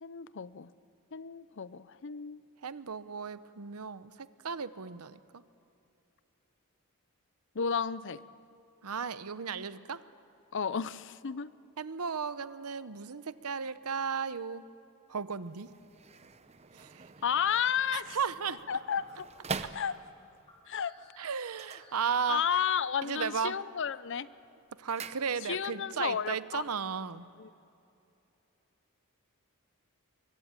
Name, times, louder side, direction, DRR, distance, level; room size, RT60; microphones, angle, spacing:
voice 1, 0.0-0.7 1.1-2.4 7.5-8.2 10.5-11.5 17.2-18.1 18.7-19.3 19.7-20.0 20.7-20.9 22.3-24.3 25.4-26.6 27.4-27.5, left 7 dB, 55° left, 17 dB, 0.6 m, -32 dB
voice 2, 2.6-5.2 8.8-10.0 11.8-14.6 15.1-15.7 16.7-17.0 17.9-18.6 21.2-22.6 23.0-23.6 24.8-27.3, right 6 dB, 85° right, 14 dB, 0.8 m, -35 dB
sound 1, 15.4-20.4 21.4-22.6 22.9-23.4 23.7-25.8 26.1-26.2, right 4 dB, 30° right, 0.7 m, -44 dB
sound 2, 16.0-16.8 17.3-17.9 18.3-18.4 18.7-23.1, left 2 dB, 25° left, 5.0 m, -60 dB
23.5 x 23.0 x 8.9 m, 2.7 s
head